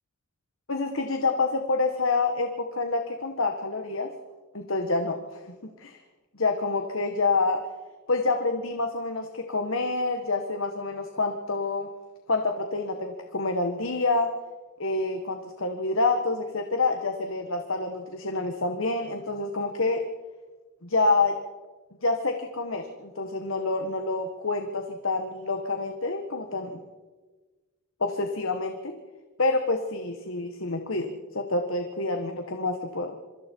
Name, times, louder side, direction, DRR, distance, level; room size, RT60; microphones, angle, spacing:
voice 1, 0.7-4.1 4.5-5.4 5.8-6.0 6.3-7.6 8.1-11.9 12.3-14.3 14.8-20.0 20.8-21.3 22.0-26.8 28.0-28.9 29.4-33.1, left 3 dB, 70° left, 5 dB, 1.6 m, -27 dB
27.0 x 24.5 x 4.7 m, 1.3 s
head